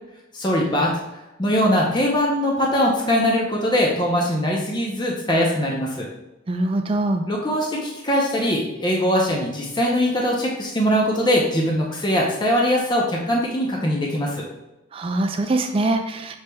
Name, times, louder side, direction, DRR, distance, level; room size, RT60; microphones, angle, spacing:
voice 1, 0.3-1.0 1.4-6.1 7.3-14.4, equal, 20° left, -2 dB, 0.6 m, -21 dB
voice 2, 6.5-7.2 14.9-16.4, right 2 dB, 25° right, 6 dB, 0.3 m, -23 dB
6.7 x 3.2 x 2.2 m, 1.0 s
head